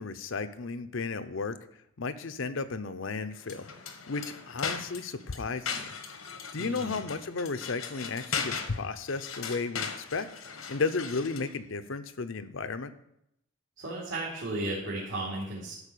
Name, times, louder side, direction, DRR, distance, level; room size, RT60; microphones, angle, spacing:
voice 1, 0.0-1.6 2.0-3.6 4.1-5.9 6.5-10.3 10.7-12.9, left 4 dB, 65° left, 11 dB, 0.7 m, -34 dB
sound 1, 3.4-11.5, left 6 dB, 80° left, 1.1 m, -38 dB
voice 2, 6.6-7.1 13.8-15.7, right 2 dB, 65° right, -7 dB, 2.7 m, -35 dB
12.0 x 4.7 x 6.7 m, 0.78 s
head